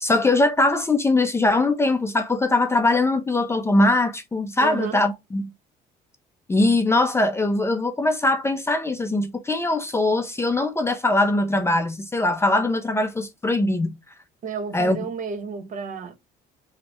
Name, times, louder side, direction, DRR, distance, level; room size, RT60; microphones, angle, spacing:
voice 1, 0.0-5.5 6.5-13.9 14.7-15.1, left 2 dB, 15° left, 0.4 m, -21 dB
voice 2, 4.6-5.0 14.4-16.1, right 6 dB, 50° right, 0.7 m, -31 dB
2.7 x 2.1 x 4.0 m
cardioid pair, 110°, 17 cm